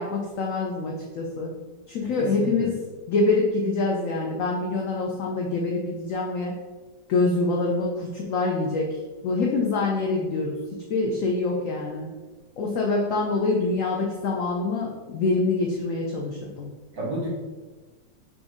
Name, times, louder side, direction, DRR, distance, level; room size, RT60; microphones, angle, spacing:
voice 1, 0.0-1.5 1.9-6.5 7.1-9.0 9.2-10.6 10.9-12.1 12.6-16.7, left 3 dB, 85° left, -1 dB, 0.7 m, -25 dB
voice 2, 2.2-2.7 16.9-17.3, right 1 dB, 60° right, -6 dB, 1.8 m, -31 dB
4.5 x 2.6 x 3.6 m, 1.3 s
omnidirectional pair, 1.9 m